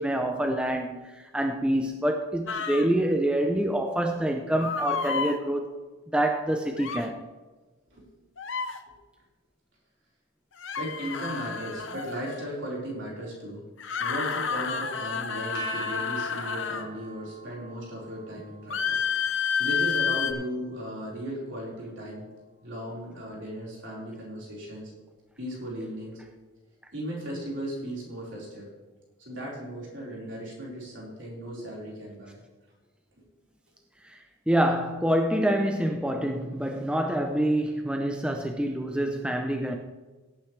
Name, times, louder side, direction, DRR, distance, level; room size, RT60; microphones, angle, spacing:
voice 1, 0.0-5.7 6.1-7.3 34.0-34.2 34.5-39.8, right 1 dB, 5° right, 3 dB, 0.5 m, -26 dB
sound 1, 2.5-2.9 4.6-5.4 6.8-7.1 8.4-8.8 10.6-12.5 13.8-16.9 18.7-20.3, left 6 dB, 65° left, 0.9 m, -30 dB
voice 2, 10.8-13.6 14.0-18.9 19.3-22.2 22.6-24.9 25.4-26.2 26.9-28.7 29.2-32.4 33.2-33.3, equal, 60° right, -4 dB, 4.6 m, -36 dB
sound 2, 15.5-21.5, right 3 dB, 40° right, 2.5 m, -45 dB
17.0 x 9.1 x 3.3 m, 1.2 s
head